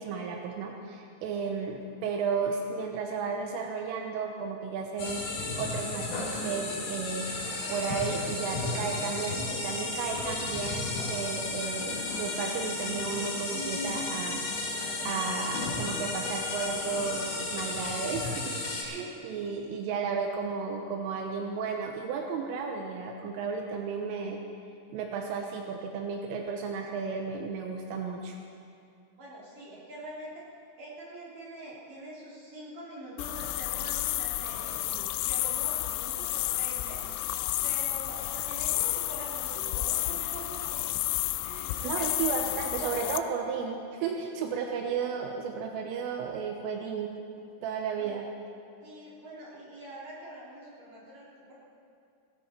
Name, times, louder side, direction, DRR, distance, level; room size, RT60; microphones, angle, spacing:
voice 1, 0.0-24.4 24.9-28.4 34.9-35.1 41.8-47.1 47.6-48.3, right 5 dB, 80° right, 2 dB, 3.4 m, -34 dB
sound 1, 5.0-18.8, left 3 dB, 55° left, 3.7 m, -33 dB
voice 2, 18.8-19.8 29.2-30.5 30.8-34.7 35.3-37.0 37.6-40.9 41.4-42.1 46.7-46.9 48.0-48.2 48.8-51.6, right 1 dB, 45° right, -7 dB, 4.2 m, -44 dB
sound 2, 33.2-43.2, left 16 dB, 90° left, 3.3 m, -31 dB
17.0 x 16.0 x 4.4 m, 2.5 s
omnidirectional pair, 5.9 m